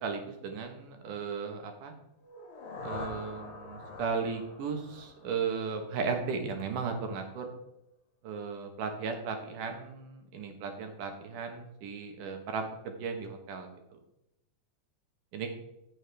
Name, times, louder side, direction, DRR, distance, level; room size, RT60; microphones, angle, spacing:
voice 1, 0.0-1.9 2.8-7.5 8.2-14.0 15.3-15.5, right 5 dB, 80° right, 5 dB, 2.8 m, -36 dB
sound 1, 2.2-6.1, left 2 dB, 50° left, 2.1 m, -44 dB
14.5 x 6.4 x 3.4 m, 0.85 s
omnidirectional pair, 3.6 m